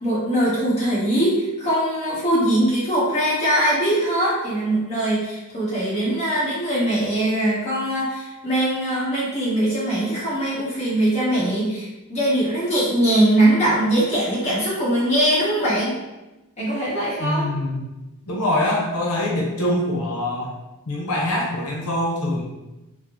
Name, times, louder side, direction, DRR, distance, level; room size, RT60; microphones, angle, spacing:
voice 1, 0.0-16.0 16.6-17.5, right 1 dB, 30° left, -8 dB, 1.1 m, -21 dB
voice 2, 17.2-17.8 18.3-20.5 20.9-22.4, left 1 dB, 90° left, -3 dB, 0.7 m, -24 dB
3.6 x 2.1 x 3.0 m, 1.0 s
head